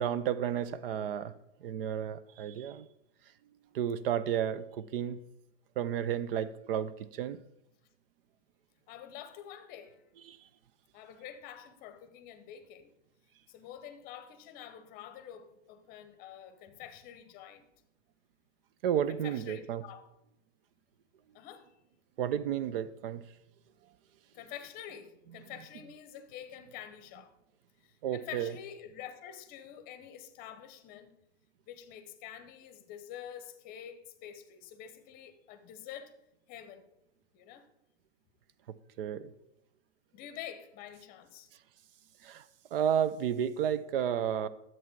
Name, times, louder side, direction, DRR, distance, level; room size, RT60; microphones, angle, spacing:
voice 1, 0.0-2.9 3.7-5.2 5.8-7.4 10.3-10.4 18.8-19.8 22.2-23.2 28.0-28.5 39.0-39.3 42.2-42.4 42.7-44.5, right 9 dB, 50° right, 0.6 m, -32 dB
voice 2, 8.9-10.0 10.9-12.9 13.5-17.7 19.1-20.0 21.3-21.7 24.3-27.3 27.8-31.1 31.7-36.2 36.5-36.8 37.3-37.7 40.1-41.5, left 10 dB, 25° left, 0.8 m, -47 dB
10.5 x 7.5 x 4.6 m
hypercardioid pair, 140°, 37 cm